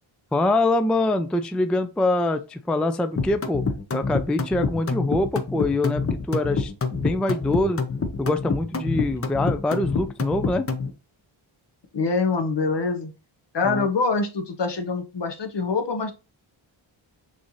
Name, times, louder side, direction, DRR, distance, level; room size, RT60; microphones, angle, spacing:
voice 1, 0.3-3.6 3.9-7.8 8.2-10.7 13.6-13.9, left 2 dB, ahead, 0.3 m, -24 dB
sound 1, 3.2-10.9, left 4 dB, 30° left, 0.7 m, -26 dB
voice 2, 11.9-13.1 13.5-16.1, left 4 dB, 60° left, 1.0 m, -24 dB
6.2 x 2.7 x 3.0 m
wide cardioid pair, 80°, 48 cm